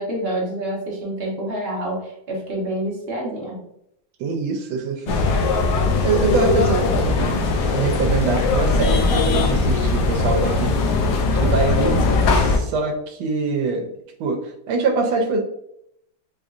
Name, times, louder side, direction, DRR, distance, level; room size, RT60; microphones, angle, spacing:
voice 1, 0.0-3.6, right 1 dB, 45° right, -3 dB, 0.8 m, -27 dB
voice 2, 4.2-5.2 6.0-7.4 7.7-11.0 11.3-13.9 14.2-14.4 14.7-15.4, right 4 dB, 85° right, 3 dB, 1.4 m, -24 dB
sound 1, 5.1-12.6, left 3 dB, 70° left, 1.0 m, -19 dB
sound 2, 5.4-10.5, right 1 dB, 90° left, 1.4 m, -38 dB
4.7 x 2.6 x 2.4 m, 0.75 s
omnidirectional pair, 2.2 m